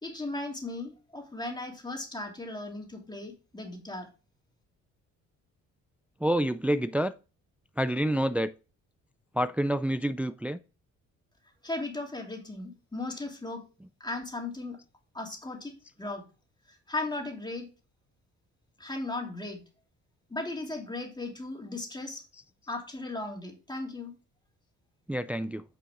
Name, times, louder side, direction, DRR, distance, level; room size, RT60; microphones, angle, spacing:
voice 1, 0.0-4.1 11.6-13.6 14.0-14.8 15.1-16.3 16.7-17.7 18.8-19.6 20.3-22.2 22.7-24.1, left 2 dB, 15° left, 2.8 m, -37 dB
voice 2, 6.2-7.1 7.8-8.5 9.3-10.6 25.1-25.6, right 1 dB, 5° right, 0.3 m, -28 dB
9.0 x 5.8 x 3.7 m
cardioid pair, 90°, 30 cm